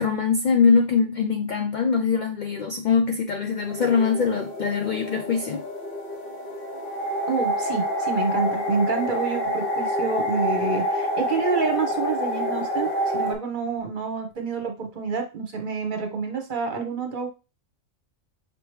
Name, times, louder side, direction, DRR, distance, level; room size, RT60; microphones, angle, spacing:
voice 1, 0.0-5.6, left 5 dB, 75° left, 0.4 m, -22 dB
sound 1, 3.3-13.4, equal, 45° left, 1.0 m, -27 dB
voice 2, 7.3-12.9 13.1-17.3, right 5 dB, 40° right, 1.0 m, -28 dB
5.1 x 3.0 x 3.2 m
omnidirectional pair, 1.4 m